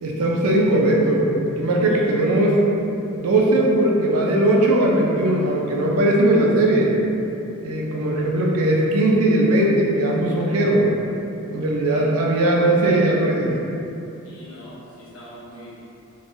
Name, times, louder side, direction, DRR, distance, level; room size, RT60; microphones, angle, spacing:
voice 1, 0.0-1.3 1.6-2.7 3.2-6.9 7.6-10.9 11.5-13.5, right 1 dB, 85° right, -2 dB, 0.5 m, -19 dB
voice 2, 11.8-12.2 14.2-15.8, left 1 dB, 65° left, -8 dB, 0.8 m, -42 dB
3.2 x 2.2 x 2.6 m, 2.8 s
head